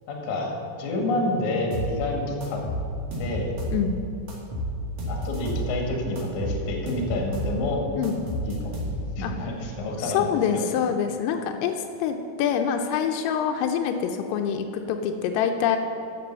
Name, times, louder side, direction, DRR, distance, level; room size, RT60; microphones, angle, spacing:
voice 1, 0.1-0.5 0.8-2.6 3.2-3.5 5.1-7.8 8.4-8.8 9.2-10.3 10.5-10.7 11.3-11.4, left 2 dB, 55° left, -1 dB, 2.2 m, -28 dB
sound 1, 1.7-2.0 2.4-3.8 4.3-5.7 6.2-7.6 8.0-9.2, equal, 65° right, 1.5 m, -31 dB
voice 2, 10.0-11.7 12.0-15.8, left 8 dB, 85° left, 5 dB, 3.2 m, -25 dB
9.3 x 7.7 x 6.8 m, 2.7 s
omnidirectional pair, 5.9 m